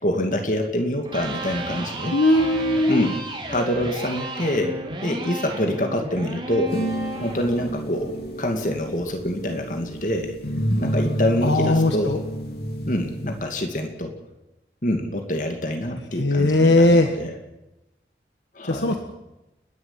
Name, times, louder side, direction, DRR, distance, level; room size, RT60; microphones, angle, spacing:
voice 1, 0.0-2.1 2.9-6.8 7.2-10.4 10.8-12.2 12.9-14.1 14.8-17.3 18.6-19.0, left 1 dB, 45° left, 4 dB, 2.5 m, -26 dB
Electric guitar, 0.9-9.0, right 2 dB, 30° right, 4.2 m, -33 dB
voice 2, 2.1-3.1 11.4-12.2 16.1-17.1 18.7-19.0, left 2 dB, 85° left, 5 dB, 1.6 m, -19 dB
sound 1, 6.7-13.6, equal, 65° left, 2.7 m, -29 dB
30.0 x 11.5 x 10.0 m, 0.99 s
head